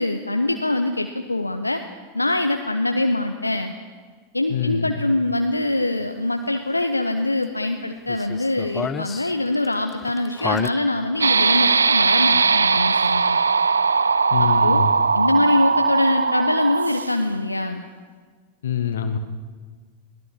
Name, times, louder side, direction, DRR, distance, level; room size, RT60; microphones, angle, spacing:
voice 1, 0.0-1.8 2.1-3.7 4.3-13.4 14.4-14.8 15.1-17.8, left 2 dB, 85° left, 6 dB, 1.0 m, -23 dB
voice 2, 4.5-5.0 14.3-14.9 18.6-19.2, left 8 dB, 60° left, 8 dB, 1.5 m, -25 dB
sound 1, 8.1-10.7, left 5 dB, 20° left, 0.8 m, -29 dB
sound 2, 11.2-17.3, right 5 dB, 75° right, 0.5 m, -19 dB
22.5 x 16.5 x 7.5 m, 1.5 s
figure-of-eight pair, 90°, 0 cm